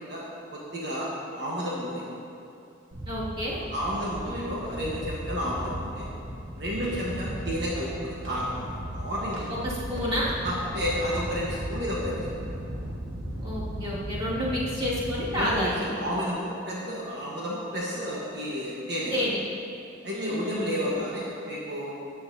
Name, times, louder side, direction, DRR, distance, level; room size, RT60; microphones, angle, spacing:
voice 1, 0.1-2.0 3.7-6.1 6.6-9.5 10.4-12.6 15.3-19.2 20.0-21.9, equal, 60° right, -6 dB, 1.3 m, -31 dB
sound 1, 2.9-15.5, right 1 dB, 85° right, 1.4 m, -36 dB
voice 2, 3.1-3.6 4.2-4.5 6.7-7.1 9.5-10.3 13.4-15.8 19.1-19.4 20.1-20.9, equal, 25° right, -8 dB, 2.2 m, -30 dB
13.5 x 9.5 x 2.8 m, 2.6 s
head